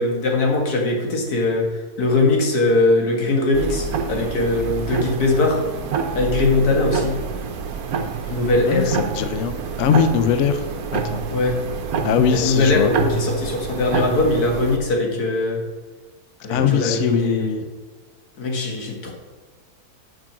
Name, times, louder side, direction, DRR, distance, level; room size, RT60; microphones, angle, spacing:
voice 1, 0.0-1.7 2.0-5.6 6.1-7.2 8.3-8.9 11.3-11.6 12.3-15.6 16.4-17.6 18.4-19.1, left 2 dB, 85° left, 0 dB, 2.0 m, -20 dB
sound 1, 3.5-14.8, right 5 dB, 75° right, 1.3 m, -27 dB
voice 2, 8.7-10.7 10.9-11.2 12.0-12.9 16.5-17.6, left 7 dB, 65° left, 10 dB, 0.8 m, -21 dB
7.3 x 6.2 x 5.9 m, 1.3 s
omnidirectional pair, 1.6 m